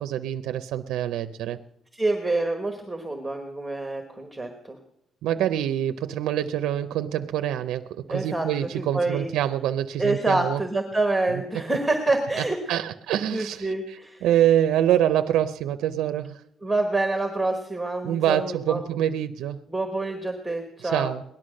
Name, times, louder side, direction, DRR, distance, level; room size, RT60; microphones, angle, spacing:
voice 1, 0.0-1.6 5.2-10.6 11.3-11.4 12.4-16.4 18.0-19.6 20.8-21.2, right 11 dB, 80° right, 10 dB, 0.5 m, -25 dB
voice 2, 1.9-4.8 8.1-9.3 10.0-12.6 13.3-14.2 16.6-18.8 19.7-21.1, right 2 dB, 5° right, 4 dB, 1.2 m, -27 dB
18.0 x 11.5 x 6.4 m, 0.77 s
cardioid pair, 165°, 0 cm